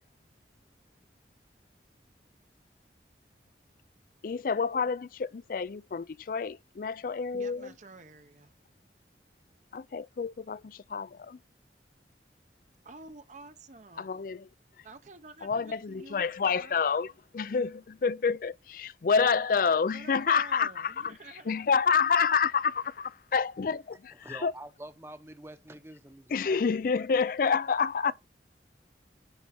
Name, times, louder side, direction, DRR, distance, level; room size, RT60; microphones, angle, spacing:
voice 1, 4.2-7.7 9.7-11.4 14.0-14.5 15.4-24.5 26.3-28.1, left 5 dB, 50° left, 0.4 m, -28 dB
voice 2, 7.3-8.7 12.8-14.2 14.8-16.8 19.9-21.7, right 3 dB, 45° right, 0.8 m, -50 dB
voice 3, 24.2-26.6 28.0-28.1, right 1 dB, 15° right, 0.9 m, -46 dB
10.5 x 4.7 x 4.2 m
head